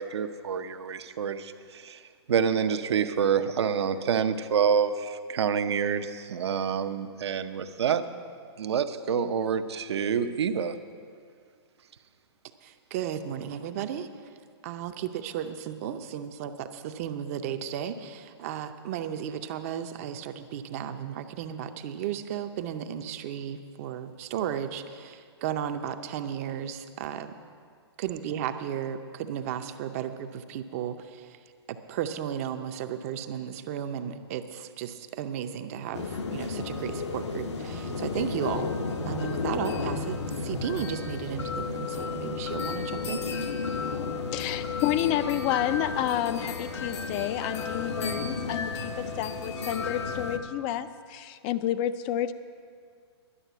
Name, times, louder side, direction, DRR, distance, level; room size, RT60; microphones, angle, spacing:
voice 1, 0.0-2.0 2.3-8.2 8.6-10.8, right 7 dB, 70° right, 8 dB, 0.7 m, -27 dB
voice 2, 12.6-14.1 14.6-27.3 28.0-31.4 31.7-38.7 39.0-43.2, right 9 dB, 35° right, 8 dB, 0.6 m, -34 dB
sound 1, 35.9-50.4, left 4 dB, 80° left, 1.1 m, -32 dB
voice 3, 44.3-52.3, left 11 dB, 20° left, 13 dB, 0.3 m, -30 dB
11.0 x 6.6 x 9.1 m, 2.1 s
hypercardioid pair, 155°, 14 cm